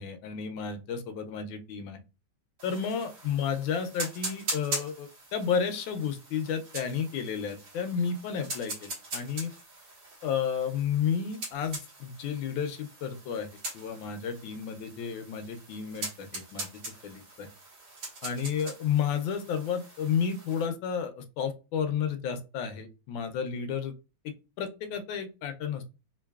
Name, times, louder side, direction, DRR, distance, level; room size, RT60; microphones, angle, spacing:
voice 1, 0.0-2.0 2.6-9.5 10.2-13.5 13.7-16.7 17.0-17.5 18.2-23.9 24.6-25.9, left 7 dB, 80° left, 7 dB, 1.4 m, -32 dB
sound 1, 2.6-20.7, right 2 dB, 65° right, 2.3 m, -42 dB
4.5 x 2.7 x 2.3 m, 0.30 s
omnidirectional pair, 2.1 m